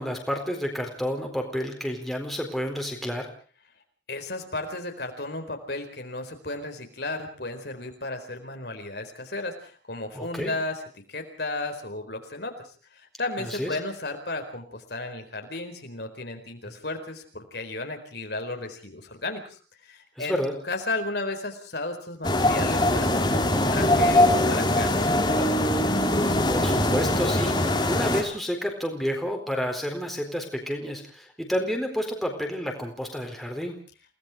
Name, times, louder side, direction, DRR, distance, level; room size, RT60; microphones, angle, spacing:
voice 1, 0.0-3.3 10.1-10.5 13.4-13.8 20.2-20.6 26.5-33.8, equal, ahead, 1 dB, 4.2 m, -30 dB
voice 2, 4.1-10.8 11.1-20.4 20.7-25.6, left 2 dB, 60° left, 5 dB, 4.4 m, -34 dB
sound 1, 22.2-28.2, left 1 dB, 25° left, 3.4 m, -22 dB
29.0 x 19.0 x 4.8 m, 0.41 s
head